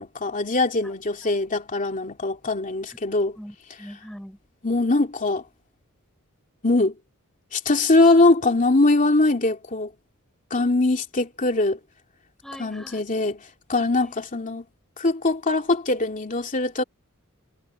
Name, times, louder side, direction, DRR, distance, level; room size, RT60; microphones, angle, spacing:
voice 1, 0.0-3.4 4.6-5.4 6.6-7.0 7.5-9.9 10.5-11.8 12.6-13.4 13.7-14.6 15.0-16.8, left 2 dB, 35° left, 2.8 m, -22 dB
voice 2, 3.4-4.4 8.4-8.5 12.4-13.1 13.9-14.1, equal, ahead, 5.9 m, -42 dB
head